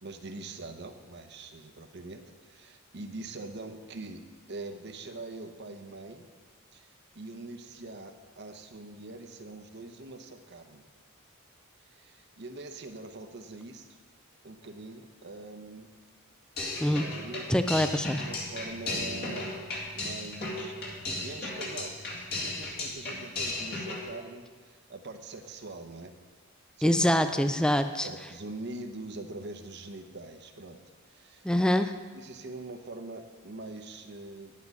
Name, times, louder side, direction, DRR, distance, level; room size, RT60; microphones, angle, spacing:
voice 1, 0.0-6.3 6.7-10.8 11.8-14.0 14.4-15.9 17.1-19.5 19.9-20.7 21.2-26.1 26.8-27.4 28.0-30.8 31.0-31.5 32.1-34.5, right 2 dB, 55° right, 6 dB, 0.8 m, -43 dB
sound 1, 16.6-24.0, left 2 dB, 45° left, 2.2 m, -35 dB
voice 2, 17.5-18.2 26.8-28.1 31.4-31.9, equal, 5° left, 9 dB, 0.3 m, -25 dB
10.5 x 8.4 x 5.3 m, 1.5 s
head